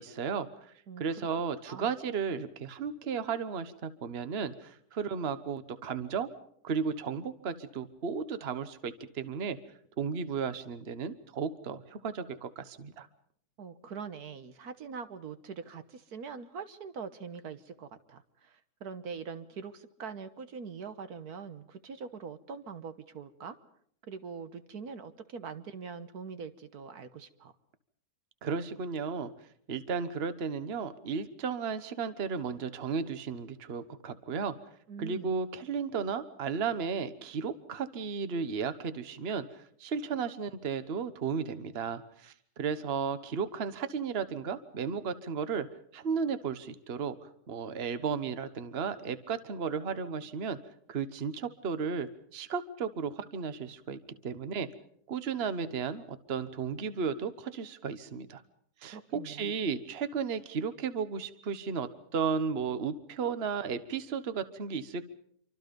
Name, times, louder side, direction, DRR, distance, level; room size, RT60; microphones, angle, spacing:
voice 1, 0.0-6.3 6.6-9.6 10.0-13.1 28.4-29.3 29.7-34.5 35.0-45.7 45.9-47.2 47.5-50.6 50.9-54.7 55.1-58.4 58.8-65.1, right 6 dB, 45° right, 12 dB, 1.3 m, -34 dB
voice 2, 0.9-1.3 1.7-1.9 13.6-23.6 24.1-27.5 34.9-35.3 58.9-59.5, right 5 dB, 75° right, 11 dB, 1.7 m, -43 dB
27.0 x 24.5 x 5.3 m, 0.64 s
omnidirectional pair, 1.7 m